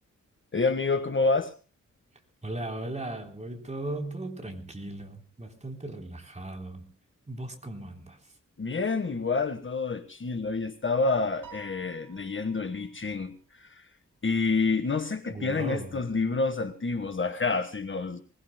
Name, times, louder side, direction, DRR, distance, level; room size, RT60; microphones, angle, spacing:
voice 1, 0.5-1.5 8.6-13.9 14.2-18.2, left 3 dB, 40° left, 9 dB, 1.4 m, -28 dB
voice 2, 2.4-6.9 7.3-8.3 15.3-16.0, right 1 dB, 20° right, 3 dB, 3.8 m, -37 dB
Piano, 11.4-13.0, right 6 dB, 80° right, 7.0 m, -51 dB
24.5 x 20.5 x 2.2 m, 0.35 s
wide cardioid pair, 115°, 32 cm